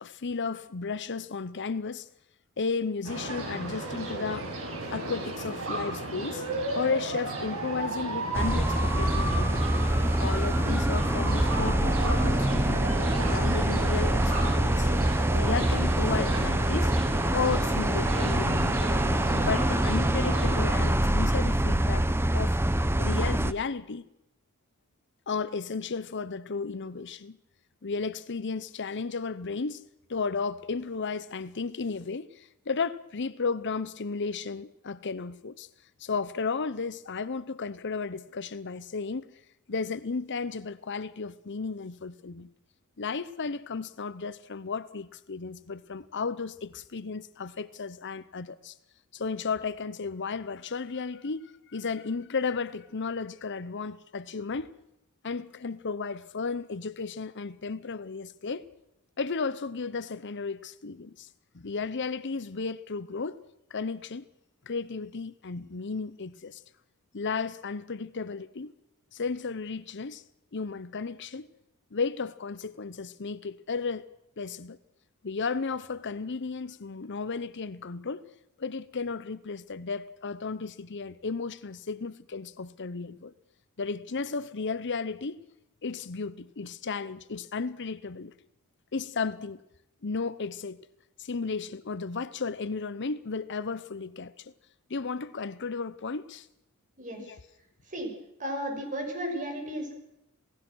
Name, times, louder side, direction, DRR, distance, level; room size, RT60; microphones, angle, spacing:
voice 1, 0.0-2.1 2.6-4.5 4.9-6.5 6.7-9.7 10.2-12.8 13.3-14.9 15.3-16.9 17.3-18.8 19.3-22.6 23.0-24.1 25.3-27.4 27.8-35.7 36.0-39.3 39.7-42.5 43.0-48.7 49.1-54.8 55.2-58.7 59.2-61.3 61.5-63.4 63.7-64.3 64.7-66.6 67.1-68.7 69.1-70.2 70.5-71.5 71.9-74.1 74.4-74.8 75.2-78.3 78.6-83.3 83.8-85.4 85.8-88.3 88.9-89.6 90.0-90.9 91.2-94.5 94.9-96.5 97.2-97.4, left 4 dB, 55° left, 0.8 m, -34 dB
sound 1, 3.0-20.9, right 2 dB, 65° right, 6.3 m, -34 dB
sound 2, 8.3-23.5, right 1 dB, 10° right, 0.8 m, -25 dB
voice 2, 98.4-99.9, equal, 35° right, 6.5 m, -34 dB
28.0 x 18.0 x 6.3 m
head